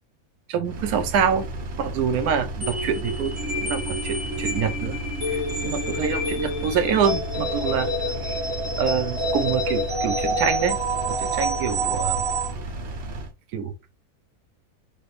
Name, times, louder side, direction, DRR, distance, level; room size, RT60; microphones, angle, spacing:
voice 1, 0.5-1.5 1.8-5.0 5.3-7.9 8.2-8.4 8.8-12.2 13.5-13.7, right 7 dB, 75° right, 1.0 m, -26 dB
Engine, 0.6-13.3, right 1 dB, 60° right, 0.6 m, -34 dB
sound 1, 2.6-12.5, right 1 dB, 25° right, 0.8 m, -28 dB
3.2 x 2.4 x 3.1 m
omnidirectional pair, 1.6 m